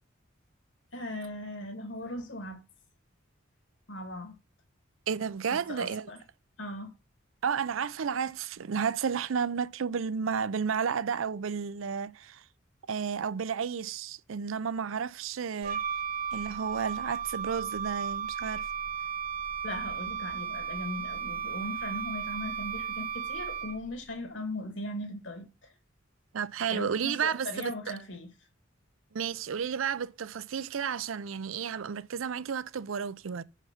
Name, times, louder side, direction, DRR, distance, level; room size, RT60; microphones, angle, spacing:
voice 1, 0.9-2.6 3.9-4.4 5.5-6.2 6.6-6.9 19.6-25.7 26.7-28.3, left 1 dB, 65° left, 2.2 m, -39 dB
voice 2, 5.1-6.1 7.4-12.4 12.9-15.8 16.3-18.7 26.3-27.7 29.1-33.4, right 6 dB, 85° right, 0.5 m, -32 dB
Wind instrument woodwind instrument, 15.6-24.0, right 7 dB, 45° right, 1.2 m, -35 dB
7.0 x 5.8 x 5.7 m
head